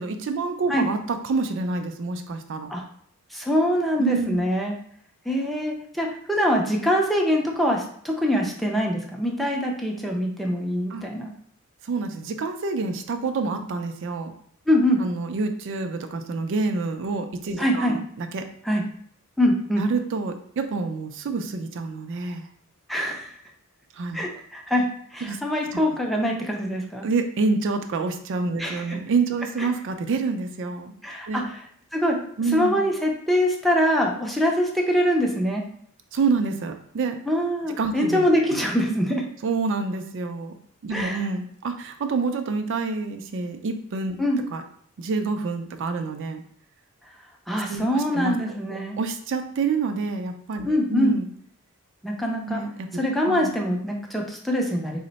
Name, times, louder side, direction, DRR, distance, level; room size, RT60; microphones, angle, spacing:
voice 1, 0.0-2.7 4.0-4.4 10.9-11.0 11.8-14.3 15.0-18.5 19.8-22.5 23.9-24.3 25.2-25.4 25.7-25.8 27.0-30.9 31.3-31.5 32.4-32.9 36.1-37.2 37.8-38.2 38.5-38.6 39.4-40.5 40.8-44.2 44.5-44.6 45.0-46.4 47.5-48.3 49.0-51.3 52.5-52.9 53.3-53.5, right 4 dB, 60° right, 7 dB, 0.4 m, -27 dB
voice 2, 3.3-4.7 5.3-11.3 14.7-15.0 17.6-18.0 18.7-18.8 19.4-19.8 22.9-23.3 24.1-27.0 28.6-29.0 31.0-31.6 31.9-32.2 32.5-35.6 37.3-39.2 40.9-41.2 44.2-44.4 47.5-49.0 50.6-51.2 52.0-52.6 52.9-55.0, equal, ahead, 0 dB, 0.5 m, -24 dB
3.7 x 2.1 x 3.9 m, 0.63 s
head